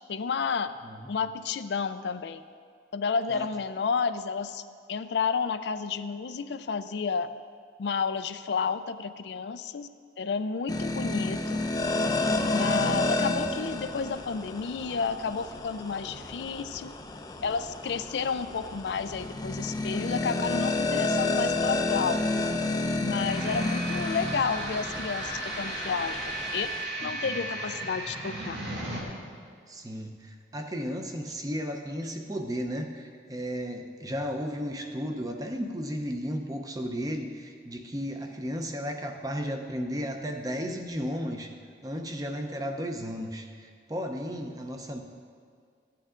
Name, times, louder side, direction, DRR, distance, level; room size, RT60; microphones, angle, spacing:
voice 1, 0.1-0.7 1.1-2.4 2.9-4.6 4.9-7.3 7.8-9.9 10.2-11.6 12.5-16.9 17.4-22.2 23.0-26.7 27.0-28.6, left 5 dB, 75° left, 11 dB, 0.4 m, -31 dB
sound 1, 10.7-26.8, left 2 dB, 20° left, 0.5 m, -30 dB
sound 2, 23.3-29.0, right 1 dB, 85° right, 2.0 m, -35 dB
voice 2, 27.0-27.3 29.7-41.5 41.8-45.0, equal, 20° right, 4 dB, 0.7 m, -34 dB
15.0 x 8.7 x 3.7 m, 2.2 s
head